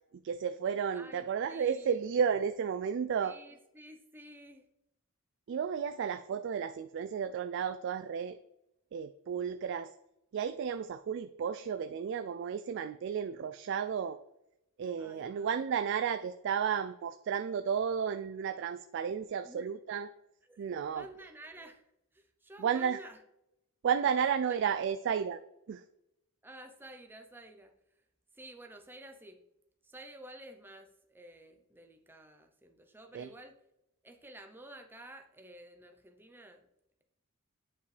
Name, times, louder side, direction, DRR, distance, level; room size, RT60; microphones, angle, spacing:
voice 1, 0.2-3.4 5.5-8.4 8.9-9.9 10.3-14.2 14.8-20.1 20.6-21.0 22.6-23.0 23.8-25.4 25.7-25.8 33.1-33.3, right 7 dB, 60° right, 10 dB, 0.3 m, -32 dB
voice 2, 0.9-2.0 3.2-4.7 15.0-15.6 19.4-19.7 20.4-21.9 22.1-23.2 24.5-24.6 26.4-27.7 28.3-29.4 29.8-33.6 34.0-36.6, right 1 dB, 10° right, 5 dB, 0.7 m, -52 dB
8.9 x 5.2 x 3.3 m, 0.84 s
head